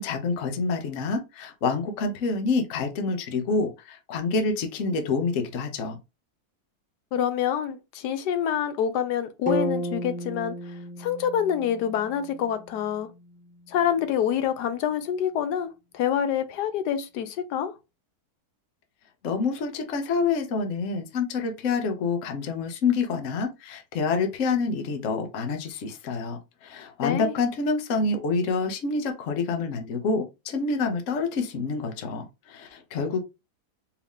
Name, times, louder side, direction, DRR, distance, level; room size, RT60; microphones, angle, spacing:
voice 1, 0.0-6.0 19.2-33.2, left 4 dB, 55° left, 1.1 m, -27 dB
voice 2, 7.1-10.5 11.0-13.1 13.7-17.7 27.0-27.3, left 9 dB, 80° left, 1.3 m, -26 dB
sound 1, 9.5-13.5, equal, 5° right, 0.7 m, -33 dB
4.6 x 2.9 x 3.5 m
omnidirectional pair, 1.7 m